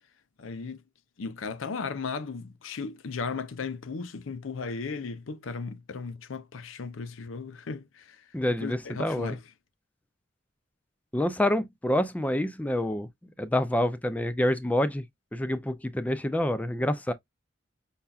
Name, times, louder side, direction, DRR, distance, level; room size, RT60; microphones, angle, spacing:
voice 1, 0.4-0.8 1.2-8.2 8.5-9.4, left 4 dB, 85° left, 0.6 m, -36 dB
voice 2, 8.3-9.4 11.1-13.1 13.4-15.0 15.3-17.1, left 1 dB, 5° left, 0.3 m, -27 dB
5.5 x 2.3 x 2.3 m
head